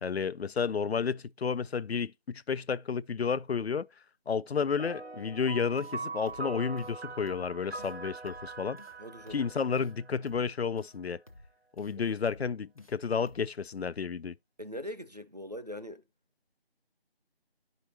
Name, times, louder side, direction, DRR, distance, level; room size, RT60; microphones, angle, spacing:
voice 1, 0.0-3.9 4.3-8.8 9.3-11.2 11.8-14.3, left 6 dB, 75° left, 0.5 m, -31 dB
sound 1, 4.8-10.6, right 3 dB, 85° right, 0.7 m, -42 dB
sound 2, 5.8-6.0 6.3-6.5 6.8-6.9 7.3-7.5 7.8-7.9 8.3-8.5 8.8-8.9 9.3-9.5 9.8-9.9 10.3-10.5 10.8-10.9 11.3-11.5 11.8-11.9 12.3-12.5 12.8-12.9 13.3-13.5, left 2 dB, 35° left, 0.8 m, -54 dB
voice 2, 9.0-9.4 14.6-16.0, left 1 dB, 40° right, 0.4 m, -41 dB
11.0 x 5.2 x 2.8 m
figure-of-eight pair, 165°, 31 cm